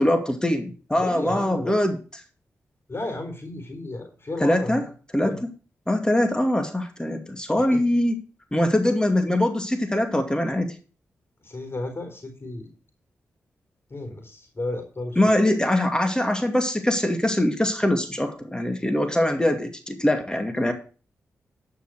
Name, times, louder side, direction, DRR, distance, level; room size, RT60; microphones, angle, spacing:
voice 1, 0.0-2.0 4.4-4.8 5.1-5.4 5.9-8.2 8.5-10.8 15.2-20.7, left 1 dB, 15° left, 6 dB, 2.4 m, -22 dB
voice 2, 1.0-1.8 2.9-4.8 5.2-5.4 7.6-7.7 11.4-12.7 13.9-15.2, left 2 dB, 40° left, 5 dB, 4.2 m, -33 dB
12.5 x 5.9 x 6.4 m, 0.36 s
supercardioid pair, 40°, 6 cm